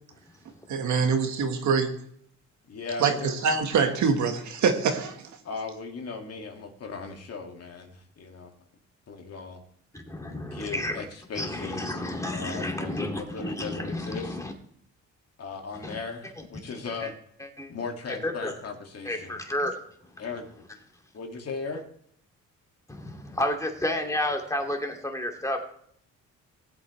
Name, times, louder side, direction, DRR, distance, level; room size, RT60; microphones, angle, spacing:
voice 1, 0.7-1.9 3.0-5.2, right 5 dB, 70° right, 6 dB, 1.6 m, -24 dB
voice 2, 2.7-3.3 5.4-8.5 9.1-9.6 10.4-12.0 12.3-14.4 15.4-17.1 17.7-19.4 20.2-20.5 21.1-21.8, left 4 dB, 55° left, 2 dB, 2.3 m, -37 dB
voice 3, 9.9-11.0 11.4-14.5 15.8-16.0 17.0-17.1 17.4-17.7 18.2-18.5 19.0-19.7 22.9-25.6, left 1 dB, 10° left, 2 dB, 2.5 m, -31 dB
18.5 x 8.1 x 3.3 m, 0.66 s
cardioid pair, 90°, 30 cm